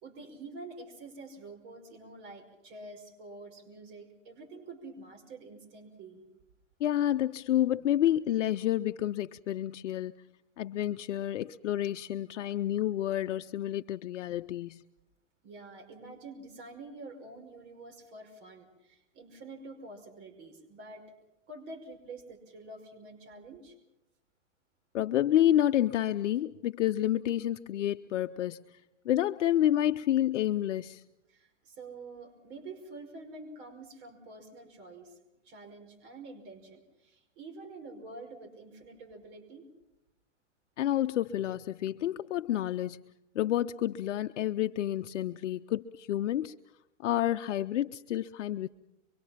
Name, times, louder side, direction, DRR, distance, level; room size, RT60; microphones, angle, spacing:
voice 1, 0.0-6.2 15.4-21.0 21.5-23.8 31.3-35.2 35.4-39.7, right 3 dB, 45° right, 4 dB, 5.5 m, -47 dB
voice 2, 6.8-10.1 10.6-14.8 24.9-28.6 29.0-31.0 40.8-43.0 43.3-46.6 47.0-48.7, left 12 dB, 70° left, 9 dB, 0.8 m, -29 dB
26.0 x 23.5 x 5.8 m, 0.89 s
hypercardioid pair, 125°, 37 cm